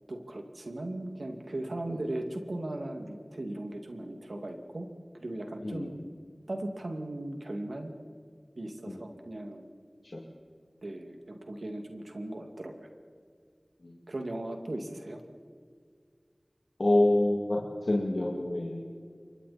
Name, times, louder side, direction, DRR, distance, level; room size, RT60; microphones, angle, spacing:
voice 1, 0.1-4.9 5.2-5.9 6.5-7.9 8.6-9.7 10.8-12.7 14.1-15.2, right 1 dB, 85° right, 4 dB, 2.4 m, -37 dB
voice 2, 16.8-17.6 17.9-18.9, left 1 dB, 75° left, -3 dB, 2.7 m, -26 dB
29.5 x 24.0 x 4.4 m, 2.1 s
wide cardioid pair, 40°, 0 cm